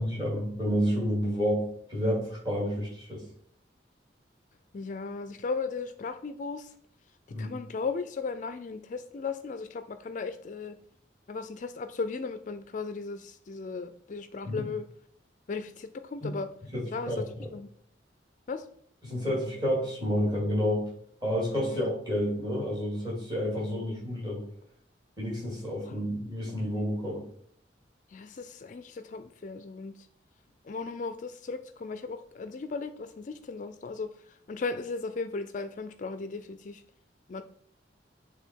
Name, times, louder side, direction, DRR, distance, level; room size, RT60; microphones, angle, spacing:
voice 1, 0.0-3.2 7.3-7.5 14.4-14.6 16.2-16.3 16.7-17.5 19.0-20.9 21.2-24.5 25.2-27.2, equal, 20° right, -3 dB, 2.6 m, -30 dB
voice 2, 4.7-6.7 7.4-10.8 11.3-14.9 15.5-16.5 16.9-17.7 18.5-18.7 21.7-21.8 23.5-23.9 25.9-26.0 28.1-30.1 30.6-36.8 37.3-37.4, left 4 dB, 45° left, 9 dB, 0.4 m, -36 dB
8.1 x 3.5 x 4.5 m, 0.62 s
head